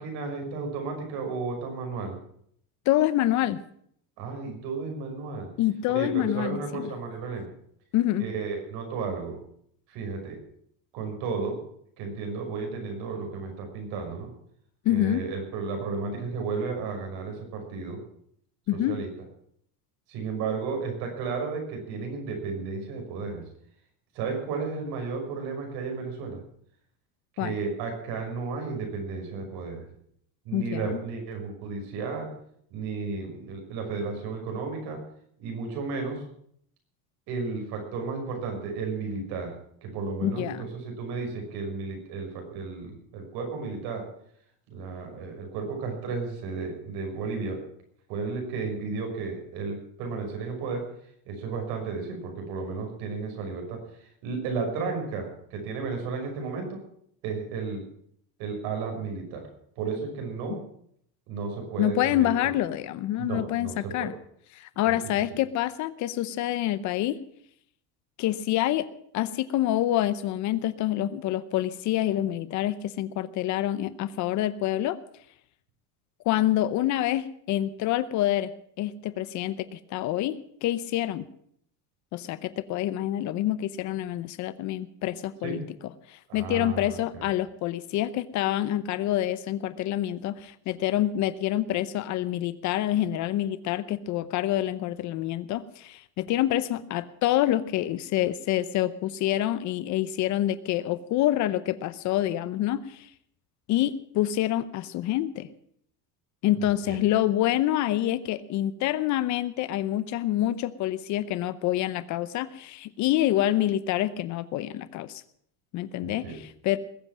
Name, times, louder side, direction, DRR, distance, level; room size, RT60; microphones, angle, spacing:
voice 1, 0.0-2.2 4.2-5.5 5.9-7.5 8.2-9.4 9.9-10.4 10.9-11.6 12.0-14.3 14.9-18.0 18.9-19.1 20.1-23.4 24.1-26.4 27.4-29.9 30.4-32.3 32.7-35.0 35.4-36.2 37.3-39.5 39.8-44.1 44.7-47.6 48.1-50.8 51.3-53.8 54.2-56.8 57.2-57.8 58.4-59.5 59.8-60.6 61.3-62.3 63.2-64.1 64.9-65.0 85.4-85.6 86.3-87.3 106.6-107.0 116.0-116.4, right 4 dB, 60° right, 3 dB, 6.0 m, -33 dB
voice 2, 2.9-3.6 5.6-6.9 7.9-8.2 14.8-15.2 18.7-19.0 27.4-27.5 30.5-31.0 40.2-40.7 61.8-64.1 64.5-67.2 68.2-68.9 69.1-75.0 76.3-81.2 82.1-85.6 86.1-103.1 103.7-105.5 106.4-115.2 115.7-116.8, left 13 dB, 45° left, 15 dB, 0.7 m, -27 dB
21.0 x 7.8 x 7.4 m, 0.67 s
cardioid pair, 160°, 42 cm